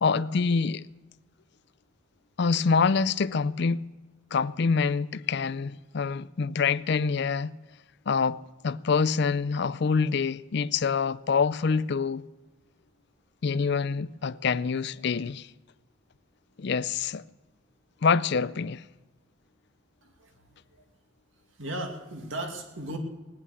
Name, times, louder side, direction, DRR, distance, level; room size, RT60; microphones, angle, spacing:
voice 1, 0.0-0.8 2.4-3.8 4.3-7.6 8.1-12.2 13.4-15.5 16.6-17.2 18.0-18.8, left 5 dB, 55° left, 0.4 m, -26 dB
voice 2, 20.0-20.8 21.5-23.0, right 1 dB, 65° right, 2.3 m, -37 dB
18.0 x 10.5 x 7.0 m
head